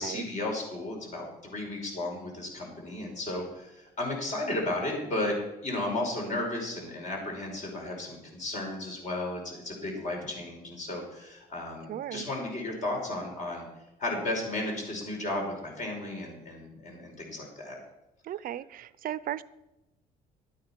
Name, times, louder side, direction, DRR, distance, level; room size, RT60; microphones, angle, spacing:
voice 1, 0.0-5.4 5.6-13.6 14.0-17.8, left 2 dB, 45° left, 0 dB, 5.3 m, -34 dB
voice 2, 11.9-12.3 18.2-19.4, right 12 dB, 55° right, 17 dB, 0.6 m, -36 dB
12.0 x 9.3 x 5.9 m, 0.94 s
cardioid pair, 110°, 17 cm